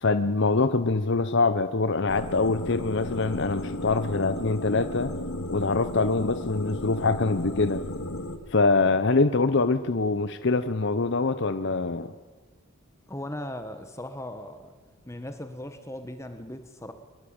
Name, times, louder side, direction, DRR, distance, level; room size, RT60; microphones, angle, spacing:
voice 1, 0.0-5.1 5.5-7.8 8.5-12.1, left 3 dB, 55° left, 11 dB, 0.8 m, -24 dB
sound 1, 2.1-8.4, left 1 dB, 75° left, 2.0 m, -34 dB
voice 2, 13.1-14.7 15.1-16.9, left 1 dB, 15° left, 8 dB, 1.2 m, -38 dB
23.5 x 21.5 x 8.8 m, 1.4 s
head